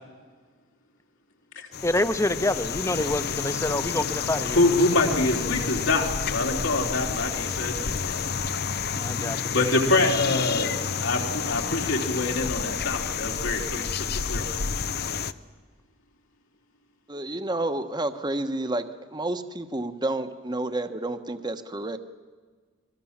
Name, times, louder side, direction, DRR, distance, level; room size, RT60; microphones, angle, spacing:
sound 1, 1.7-15.3, left 6 dB, 55° left, 0.8 m, -29 dB
voice 1, 1.8-4.6 8.9-9.6, left 1 dB, 15° left, 11 dB, 1.1 m, -27 dB
voice 2, 4.5-8.2 9.5-10.7 11.0-14.6, left 2 dB, 80° left, 1 dB, 3.6 m, -25 dB
voice 3, 17.1-18.8 19.1-22.0, right 2 dB, 20° right, 9 dB, 1.2 m, -30 dB
29.0 x 22.0 x 7.4 m, 1.5 s
head